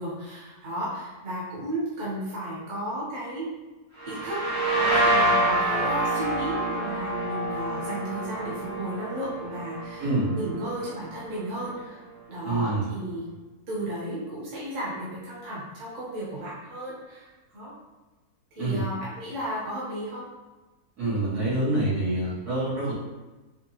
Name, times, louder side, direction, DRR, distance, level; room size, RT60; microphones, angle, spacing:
voice 1, 0.0-3.5 4.1-4.4 4.7-12.0 12.3-13.2 13.7-17.7 18.5-20.3, right 1 dB, 55° right, -8 dB, 1.5 m, -34 dB
sound 1, 4.0-11.5, right 1 dB, 25° right, 0.8 m, -27 dB
voice 2, 10.0-10.3 12.4-12.9 18.6-18.8 21.0-22.9, right 2 dB, 80° right, -9 dB, 2.2 m, -26 dB
5.1 x 2.3 x 2.9 m, 1.2 s
omnidirectional pair, 1.7 m